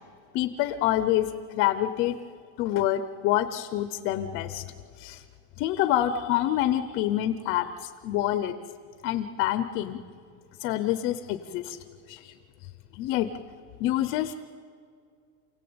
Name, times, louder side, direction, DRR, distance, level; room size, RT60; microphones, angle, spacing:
voice 1, 0.3-2.2 2.6-4.6 5.0-5.2 5.6-8.6 9.0-10.0 10.6-11.8 12.1-12.3 12.9-13.3 13.8-14.3, left 13 dB, 30° left, 11 dB, 0.7 m, -27 dB
29.0 x 17.0 x 8.7 m, 2.3 s
supercardioid pair, 170°, 37 cm